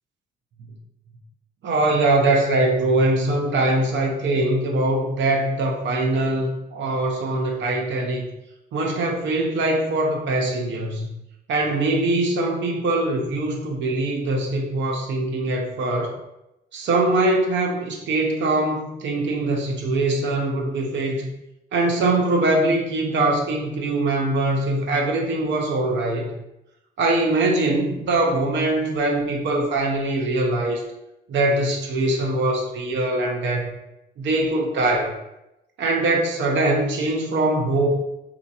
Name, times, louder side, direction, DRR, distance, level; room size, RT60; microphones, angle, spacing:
voice 1, 1.6-8.3 8.7-11.1 11.5-16.2 16.7-21.3 21.7-26.3 27.0-30.8 31.3-33.7 34.2-35.1 35.8-37.9, right 2 dB, 70° right, 0 dB, 0.7 m, -22 dB
2.8 x 2.4 x 4.0 m, 0.88 s
cardioid pair, 90°, 20 cm